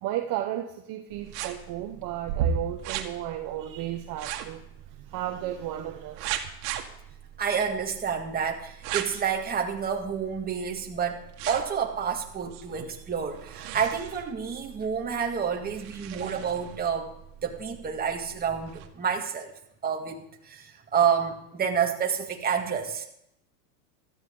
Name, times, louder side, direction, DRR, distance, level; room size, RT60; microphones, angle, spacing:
voice 1, 0.0-6.4, right 12 dB, 40° right, 4 dB, 1.1 m, -34 dB
sound 1, 1.1-18.9, right 8 dB, 70° right, 2.0 m, -38 dB
voice 2, 7.4-17.1 17.4-19.5 19.8-23.1, right 7 dB, 20° right, 1 dB, 2.1 m, -29 dB
16.5 x 14.0 x 3.9 m, 0.78 s
supercardioid pair, 140°, 48 cm